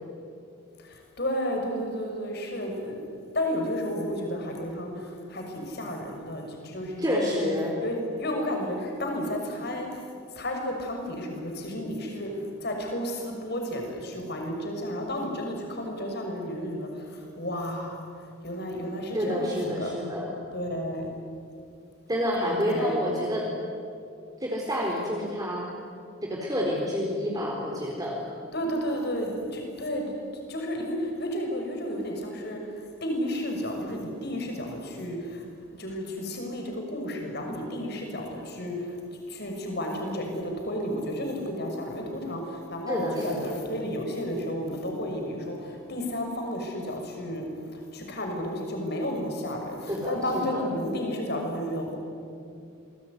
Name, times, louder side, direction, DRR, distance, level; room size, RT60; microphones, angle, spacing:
voice 1, 0.8-3.0 3.3-7.5 7.8-10.0 10.3-18.0 18.4-19.9 20.5-21.1 22.4-23.0 28.5-30.1 30.5-35.5 35.7-39.0 39.3-52.0, equal, 50° left, 2 dB, 6.3 m, -32 dB
voice 2, 7.0-7.7 19.1-20.3 22.1-23.5 24.4-25.7 26.2-28.2 42.9-43.5 49.9-50.7, equal, 20° right, -2 dB, 4.1 m, -28 dB
28.0 x 21.5 x 9.8 m, 2.6 s
head